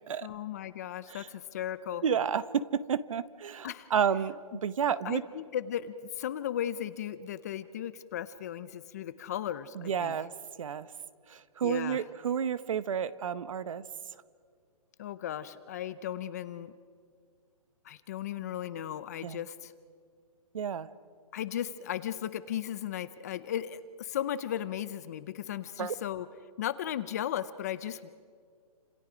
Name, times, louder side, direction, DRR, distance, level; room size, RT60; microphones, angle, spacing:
voice 1, 0.2-2.0 3.6-3.9 5.0-10.2 11.6-12.0 15.0-16.7 17.8-19.7 21.3-26.3 26.6-28.1, left 10 dB, 25° left, 14 dB, 0.6 m, -36 dB
voice 2, 2.0-4.4 4.6-5.2 9.7-10.3 10.6-10.9 11.3-13.8 19.2-19.4 20.5-20.9 25.8-25.9, right 7 dB, 60° right, 15 dB, 1.0 m, -30 dB
29.5 x 27.0 x 5.1 m, 2.1 s
hypercardioid pair, 165°, 19 cm